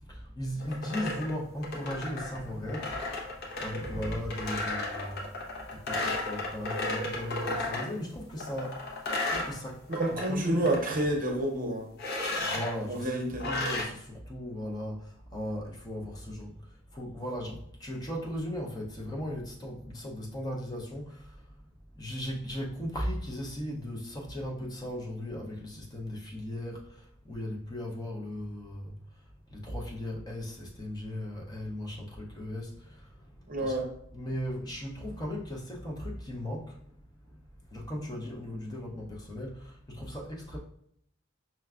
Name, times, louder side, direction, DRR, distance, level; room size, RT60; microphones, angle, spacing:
voice 1, 0.0-5.3 5.7-10.8 12.4-21.5 21.9-28.9 29.5-36.9 37.3-37.4 37.7-40.6, equal, 20° left, 0.6 m, -37 dB
sound 1, 0.6-7.9 8.4-10.3 10.5-11.1 12.0-12.7 13.4-13.8, left 2 dB, 55° left, 0.8 m, -34 dB
voice 2, 9.9-11.9 12.9-13.5 33.5-33.9, right 1 dB, 45° right, 0.7 m, -29 dB
5.7 x 2.3 x 2.3 m
head